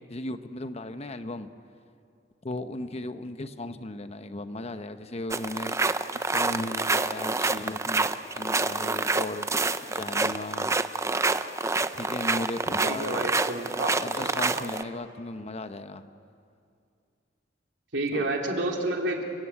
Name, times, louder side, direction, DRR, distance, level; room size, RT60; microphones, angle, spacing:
voice 1, 0.1-1.5 2.4-5.8 6.1-10.7 11.9-13.3 14.0-16.1 18.1-18.3, left 2 dB, 35° left, 10 dB, 0.9 m, -36 dB
sound 1, 5.3-14.8, right 3 dB, 15° right, 0.7 m, -27 dB
voice 2, 12.8-14.7 17.9-19.2, right 1 dB, 70° right, 1 dB, 3.4 m, -30 dB
29.5 x 18.0 x 8.6 m, 2.4 s
head